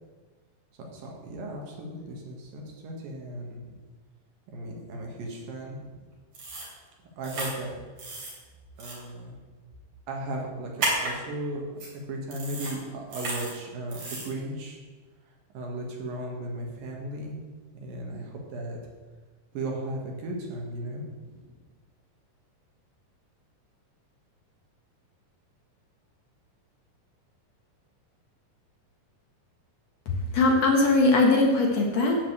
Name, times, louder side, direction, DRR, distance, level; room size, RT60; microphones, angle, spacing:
voice 1, 0.7-3.8 4.5-6.1 7.0-7.8 8.1-8.2 8.8-9.4 10.1-14.8 15.5-17.4 17.8-18.8 19.5-21.6, right 1 dB, 80° right, 0 dB, 3.4 m, -36 dB
sound 1, 6.3-6.7 7.2-7.5 8.0-8.3 8.8-8.9 10.8-11.1 11.8-11.9 12.3-12.7 13.1-13.5 13.9-14.3, right 2 dB, 55° right, 4.4 m, -32 dB
voice 2, 30.1-32.2, left 2 dB, 55° left, 0 dB, 2.3 m, -21 dB
11.5 x 5.2 x 8.1 m, 1.4 s
omnidirectional pair, 4.0 m